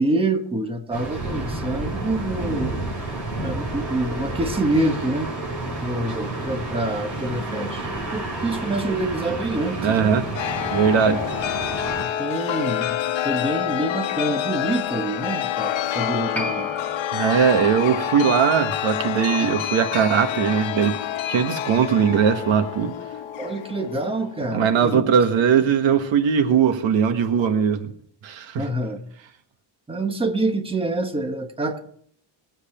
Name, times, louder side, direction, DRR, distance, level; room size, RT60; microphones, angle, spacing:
voice 1, 0.0-2.7 3.4-5.3 5.7-10.1 10.9-11.3 12.0-13.0 13.2-16.7 23.4-25.0 28.6-29.0 29.9-31.8, right 2 dB, 10° right, 1.3 m, -26 dB
sound 1, 0.9-12.0, right 2 dB, 40° right, 4.8 m, -30 dB
voice 2, 9.8-10.2 10.7-11.2 17.1-20.9 21.3-22.9 24.5-27.9 28.2-28.6, right 7 dB, 80° right, 1.6 m, -20 dB
Chime, 10.3-24.6, left 11 dB, 90° left, 1.0 m, -27 dB
Piano, 16.3-23.3 23.6-23.7, right 1 dB, 5° left, 2.1 m, -40 dB
20.5 x 8.0 x 4.4 m
cardioid pair, 150°, 45 cm